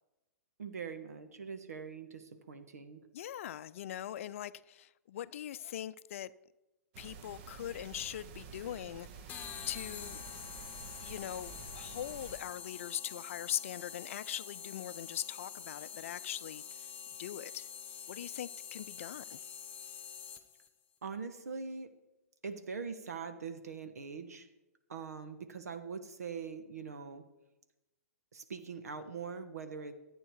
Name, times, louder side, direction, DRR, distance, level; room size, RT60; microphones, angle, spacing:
voice 1, 0.6-3.0 21.0-21.9 22.4-24.5 24.9-27.2 28.3-29.9, right 5 dB, 75° right, 1.6 m, -42 dB
voice 2, 3.1-6.3 7.0-9.3 9.7-10.2 11.0-16.9 17.2-17.7 18.1-19.4, left 11 dB, 55° left, 0.5 m, -41 dB
sound 1, 6.9-12.4, right 5 dB, 40° right, 1.2 m, -50 dB
sound 2, 9.3-20.7, left 8 dB, 20° left, 1.1 m, -46 dB
14.5 x 8.9 x 4.8 m
hypercardioid pair, 125°, 9 cm